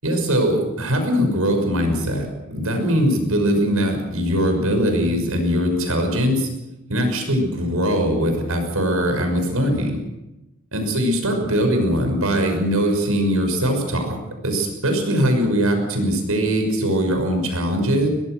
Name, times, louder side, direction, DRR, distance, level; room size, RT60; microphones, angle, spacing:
voice 1, 0.0-6.5 6.9-10.0 10.7-14.2 14.4-18.1, equal, 85° right, 4 dB, 6.0 m, -21 dB
22.5 x 19.0 x 6.4 m, 0.97 s
head